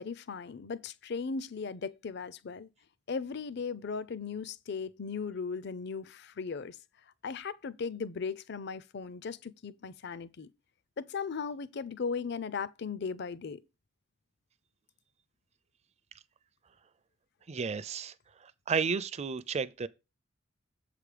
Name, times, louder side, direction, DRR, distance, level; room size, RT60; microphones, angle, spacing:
voice 1, 0.0-2.7 3.1-6.8 7.2-10.5 11.0-13.6, left 5 dB, 60° left, 0.5 m, -37 dB
voice 2, 17.5-18.1 18.4-19.9, right 5 dB, 35° right, 0.5 m, -32 dB
7.4 x 4.9 x 5.0 m
head